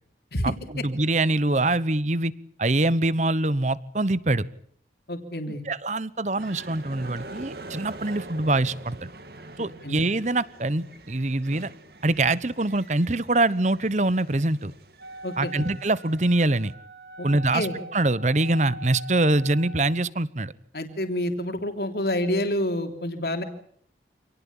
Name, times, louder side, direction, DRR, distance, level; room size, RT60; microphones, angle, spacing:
voice 1, 0.4-2.3 2.6-4.4 5.5-9.1 9.6-11.7 12.0-14.7 15.4-16.7 17.2-17.7 17.9-20.5, right 2 dB, 40° right, 18 dB, 1.0 m, -24 dB
voice 2, 5.1-5.6 9.8-10.0 15.2-15.6 17.2-17.3 17.5-17.7 20.7-23.4, left 1 dB, 60° left, 5 dB, 3.2 m, -28 dB
sound 1, 6.4-16.7, right 2 dB, 60° right, 2.3 m, -44 dB
Wind instrument woodwind instrument, 15.0-20.0, right 1 dB, 80° right, 6.6 m, -42 dB
27.5 x 18.5 x 8.7 m, 0.64 s
head